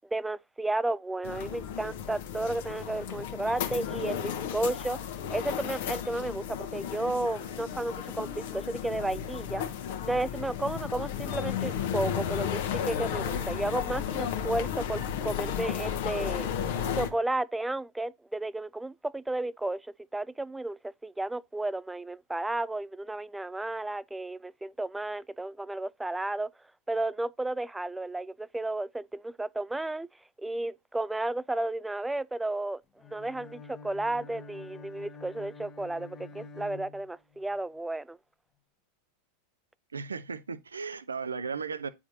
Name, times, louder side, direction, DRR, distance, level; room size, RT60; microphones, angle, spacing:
voice 1, 0.1-5.0 5.3-9.6 10.0-16.5 16.9-26.5 26.9-30.1 30.4-32.8 33.1-38.2, right 2 dB, 5° right, 0.3 m, -33 dB
sound 1, 1.2-17.1, left 9 dB, 55° left, 1.0 m, -34 dB
Bowed string instrument, 33.0-37.6, left 4 dB, 25° left, 1.0 m, -47 dB
voice 2, 39.9-41.9, right 5 dB, 75° right, 0.5 m, -35 dB
9.2 x 4.8 x 2.7 m
figure-of-eight pair, 90°, 0 cm